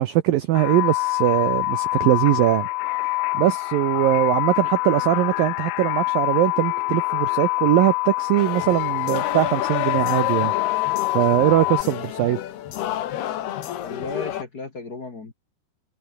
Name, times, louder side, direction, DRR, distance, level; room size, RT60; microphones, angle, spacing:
voice 1, 0.0-2.7 3.3-10.8 11.1-12.4, right 14 dB, 90° right, 2.0 m, -21 dB
sound 1, 0.6-11.8, left 21 dB, 85° left, 2.9 m, -25 dB
sound 2, 8.4-14.4, left 12 dB, 65° left, 3.4 m, -30 dB
voice 2, 13.8-15.3, left 3 dB, 35° left, 1.7 m, -34 dB
omnidirectional pair, 5.4 m